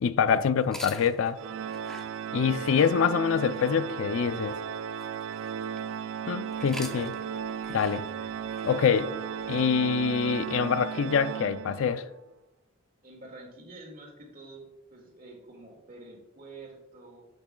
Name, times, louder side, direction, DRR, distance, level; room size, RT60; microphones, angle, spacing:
voice 1, 0.0-1.4 2.3-4.6 6.3-7.1 7.7-8.1 8.6-9.1 9.5-12.0, left 6 dB, 65° left, 0.4 m, -25 dB
sound 1, 0.6-6.0 6.5-10.5, equal, 5° left, 0.6 m, -48 dB
Organ, 1.4-12.1, right 8 dB, 70° right, 0.3 m, -35 dB
voice 2, 13.0-14.6 14.9-17.2, right 2 dB, 40° right, 1.9 m, -47 dB
8.6 x 8.1 x 2.2 m
head